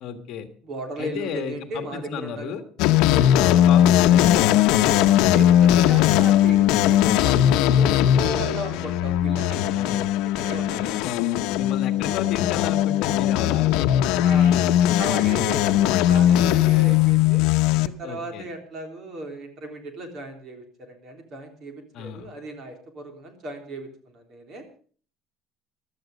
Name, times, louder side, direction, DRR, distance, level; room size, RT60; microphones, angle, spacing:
voice 1, 0.0-0.5 1.0-2.6 3.3-4.9 9.7-10.0 11.0-11.1 11.6-13.9 14.3-14.4 18.0-18.5 21.9-22.3, left 7 dB, 50° left, 8 dB, 1.6 m, -33 dB
voice 2, 0.6-2.5 3.0-3.5 5.3-10.1 10.4-11.3 14.2-14.6 15.0-17.4 17.7-24.6, right 2 dB, 40° right, 5 dB, 3.5 m, -36 dB
sound 1, 2.8-17.9, left 12 dB, 75° left, 0.9 m, -19 dB
16.0 x 12.0 x 5.2 m, 0.43 s
cardioid pair, 165°, 0 cm